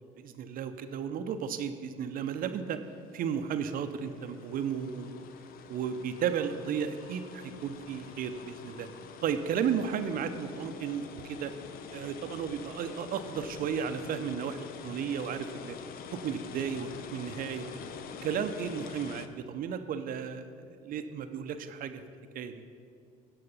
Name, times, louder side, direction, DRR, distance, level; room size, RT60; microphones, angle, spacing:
voice 1, 0.2-2.8 3.1-5.2 5.7-8.9 9.2-11.5 11.9-15.8 16.1-17.7 18.2-22.0 22.3-22.6, right 7 dB, 50° right, 9 dB, 0.7 m, -34 dB
sound 1, 2.4-19.3, left 7 dB, 50° left, 0.7 m, -46 dB
16.0 x 5.7 x 5.5 m, 2.2 s
hypercardioid pair, 60°, 19 cm